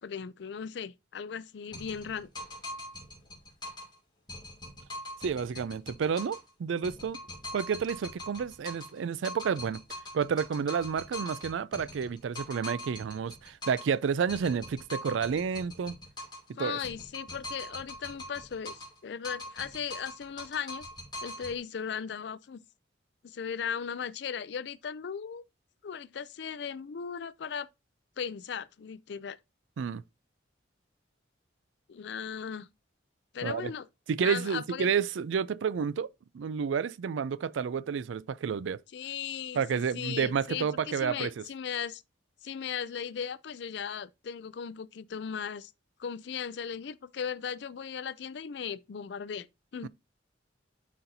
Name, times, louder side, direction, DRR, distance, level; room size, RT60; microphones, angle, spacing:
voice 1, 0.0-2.3 16.6-20.9 21.2-22.6 23.2-25.4 25.8-27.7 28.2-29.4 31.9-32.7 33.3-33.9 34.2-34.9 38.9-42.0 42.4-45.7 46.0-49.5 49.7-49.9, left 7 dB, 60° left, 0.4 m, -37 dB
sound 1, 1.7-3.9 4.3-6.5 6.8-9.0 9.2-13.9 14.3-16.5 16.8-19.0 19.2-21.6, left 1 dB, 25° left, 2.7 m, -42 dB
voice 2, 5.2-7.2 7.5-9.8 10.1-15.9 16.6-16.8 29.8-30.0 33.4-33.7 34.1-38.8 39.5-41.4, right 6 dB, 85° right, 0.4 m, -30 dB
11.5 x 4.3 x 2.7 m
head